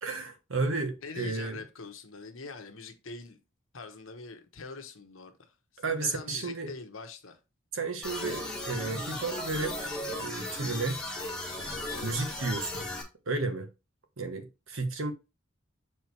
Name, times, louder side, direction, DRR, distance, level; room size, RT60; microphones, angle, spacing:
voice 1, 0.0-1.6 5.8-6.7 7.7-11.0 12.0-12.9 13.3-13.7 14.2-15.1, right 3 dB, 70° right, 1.2 m, -33 dB
voice 2, 1.0-3.4 3.7-7.4 11.8-12.4, left 4 dB, 70° left, 1.1 m, -44 dB
sound 1, 8.0-13.0, left 1 dB, 5° left, 1.3 m, -36 dB
6.6 x 4.5 x 3.2 m
head